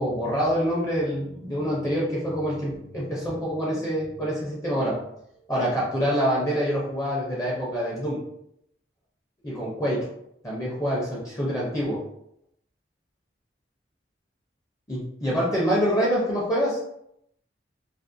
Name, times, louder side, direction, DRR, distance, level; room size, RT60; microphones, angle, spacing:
voice 1, 0.0-5.0 5.5-8.2 9.4-10.0 10.4-12.0 14.9-16.8, equal, 15° left, -6 dB, 0.5 m, -26 dB
2.4 x 2.0 x 2.5 m, 0.76 s
head